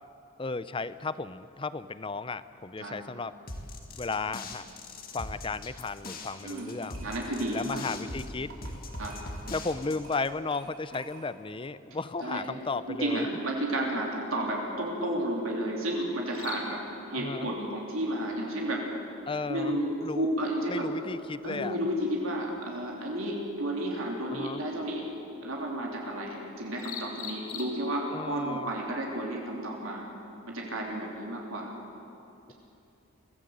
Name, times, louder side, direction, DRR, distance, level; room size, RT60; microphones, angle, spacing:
voice 1, 0.4-3.4 3.9-4.7 5.1-7.0 7.5-8.7 9.5-13.3 17.1-17.5 19.3-20.3 20.7-21.8 24.3-24.6 28.1-28.7, left 3 dB, 25° left, 15 dB, 0.5 m, -34 dB
sound 1, 3.5-10.3, left 2 dB, 45° left, 2.0 m, -41 dB
sound 2, 6.0-11.5, right 3 dB, 90° right, 3.8 m, -51 dB
voice 2, 7.0-7.8 9.0-9.2 12.2-12.4 12.9-18.9 19.5-20.9 21.4-25.1 25.4-30.1 30.5-31.7, right 1 dB, 70° right, -1 dB, 3.3 m, -32 dB
sound 3, 10.7-28.2, left 6 dB, 85° left, 3.3 m, -50 dB
23.5 x 15.5 x 8.0 m, 2.7 s
head